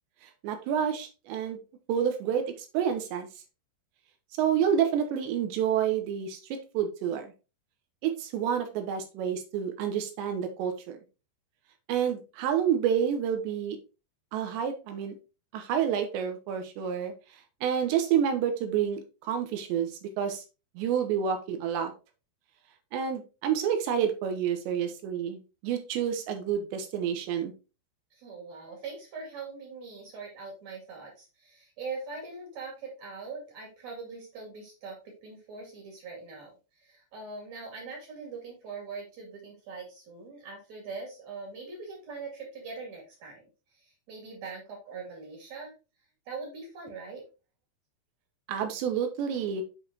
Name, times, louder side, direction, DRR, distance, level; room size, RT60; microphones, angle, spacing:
voice 1, 0.4-1.6 1.9-3.3 4.4-7.3 8.0-11.0 11.9-13.8 14.3-15.1 15.5-17.1 17.6-19.9 20.2-20.4 20.8-21.9 22.9-27.5 48.5-49.6, right 8 dB, 80° right, 7 dB, 3.2 m, -29 dB
voice 2, 28.1-43.5 43.7-45.7 46.3-47.3, right 4 dB, 45° right, 0 dB, 3.0 m, -42 dB
7.9 x 4.9 x 2.8 m, 0.30 s
omnidirectional pair, 5.1 m